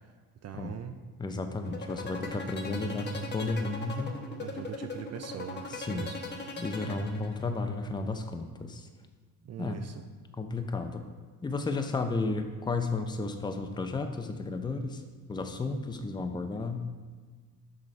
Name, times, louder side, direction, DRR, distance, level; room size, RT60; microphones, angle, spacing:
voice 1, 0.4-1.0 4.4-6.2 9.4-9.9, right 9 dB, 45° right, 8 dB, 0.4 m, -41 dB
voice 2, 1.2-4.1 5.7-6.1 6.6-8.9 9.6-9.8 10.4-11.0 11.4-15.0 15.3-16.9, left 3 dB, 10° left, 6 dB, 0.5 m, -33 dB
sound 1, 1.6-7.6, left 4 dB, 30° left, 1.0 m, -39 dB
6.3 x 5.1 x 4.3 m, 1.4 s
cardioid pair, 105°, 37 cm